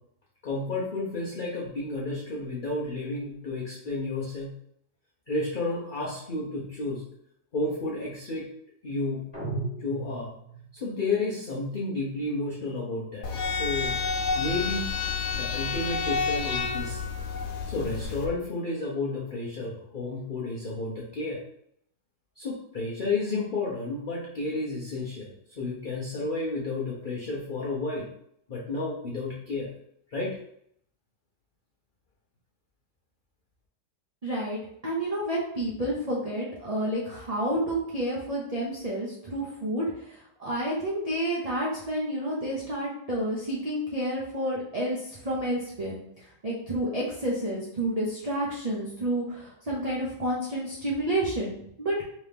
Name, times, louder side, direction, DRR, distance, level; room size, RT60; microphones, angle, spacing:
voice 1, 0.4-4.5 5.3-7.1 7.5-8.5 8.8-9.3 9.8-10.3 10.7-14.0 14.3-14.9 15.3-17.0 17.7-21.4 22.4-28.1 28.5-29.7 30.1-30.3, left 2 dB, 50° left, -5 dB, 0.6 m, -31 dB
sound 1, 9.3-10.8, right 3 dB, 20° left, 1.1 m, -35 dB
sound 2, 13.2-18.3, left 5 dB, 75° left, 1.1 m, -29 dB
voice 2, 34.2-46.0 46.4-52.0, right 1 dB, 50° right, -5 dB, 0.4 m, -30 dB
3.7 x 3.0 x 3.4 m, 0.71 s
omnidirectional pair, 1.9 m